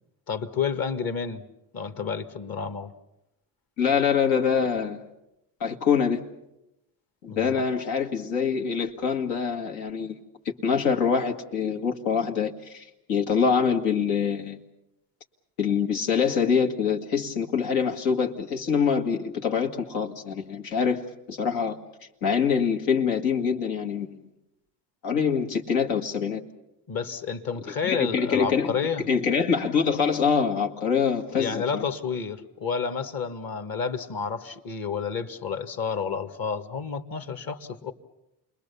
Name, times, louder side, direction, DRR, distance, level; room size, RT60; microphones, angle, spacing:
voice 1, 0.3-1.4 1.7-2.9 7.3-7.6 26.9-29.0 31.3-37.9, left 6 dB, 50° left, 8 dB, 1.8 m, -30 dB
voice 2, 3.8-5.0 5.6-6.2 7.2-10.2 10.6-14.6 15.6-21.8 22.2-24.2 25.0-26.4 27.8-31.8, left 6 dB, 90° left, 2 dB, 2.3 m, -25 dB
29.0 x 21.5 x 7.0 m, 0.90 s
supercardioid pair, 95°, 46 cm